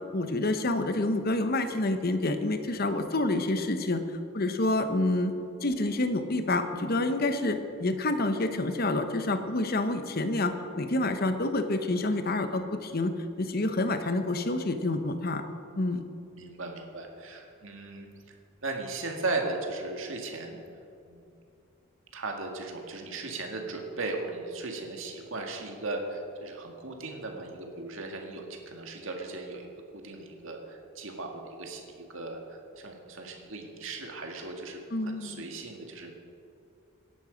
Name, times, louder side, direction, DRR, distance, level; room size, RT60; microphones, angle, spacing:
voice 1, 0.1-4.0 4.3-5.3 5.6-15.4 15.8-16.0 34.9-35.4, left 2 dB, 45° left, 8 dB, 1.0 m, -28 dB
voice 2, 16.4-18.1 18.6-20.6 21.0-21.3 22.1-29.7 29.9-32.4 32.8-36.1, right 3 dB, 70° right, 2 dB, 1.9 m, -37 dB
17.5 x 11.0 x 5.1 m, 2.6 s
head